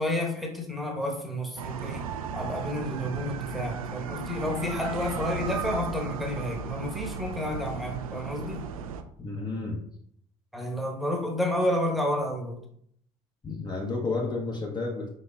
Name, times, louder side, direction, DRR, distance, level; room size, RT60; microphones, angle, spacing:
voice 1, 0.0-2.1 2.3-8.6 10.5-12.6, left 1 dB, ahead, 1 dB, 1.0 m, -30 dB
sound 1, 1.6-9.0, right 7 dB, 75° right, 0.4 m, -35 dB
voice 2, 9.2-9.9 13.4-15.1, left 3 dB, 25° left, 0 dB, 0.8 m, -31 dB
5.1 x 4.1 x 2.3 m, 0.66 s
figure-of-eight pair, 55°, 18 cm